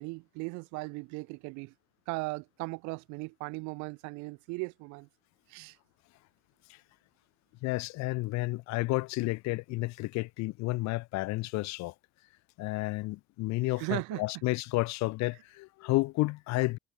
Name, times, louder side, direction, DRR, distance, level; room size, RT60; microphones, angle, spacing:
voice 1, 0.0-1.7 2.1-5.1 5.5-5.8 13.8-14.2, right 28 dB, 80° right, 4.6 m, -37 dB
voice 2, 7.6-11.9 12.6-16.8, left 21 dB, 70° left, 3.2 m, -31 dB
cardioid pair, 125°, 29 cm